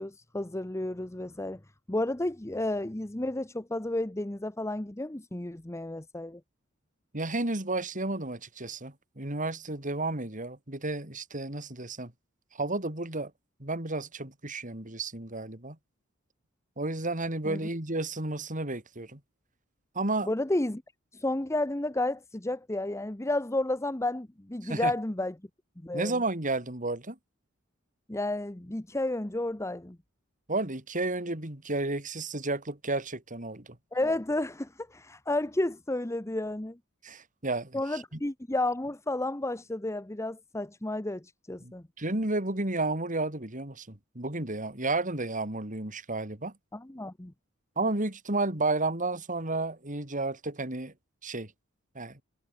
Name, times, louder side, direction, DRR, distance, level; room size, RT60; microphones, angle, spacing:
voice 1, 0.0-1.6 1.9-6.4 17.4-17.7 20.2-20.8 21.1-25.3 25.8-26.2 28.1-30.0 33.9-36.8 37.7-41.8 46.7-47.3, left 1 dB, 15° left, 0.9 m, -31 dB
voice 2, 7.1-12.1 12.5-13.3 13.6-15.8 16.8-19.2 19.9-20.3 24.6-24.9 25.9-27.2 30.5-33.8 37.0-38.2 41.6-46.5 47.8-50.9 51.2-51.5 52.0-52.2, right 2 dB, 40° right, 3.8 m, -32 dB
head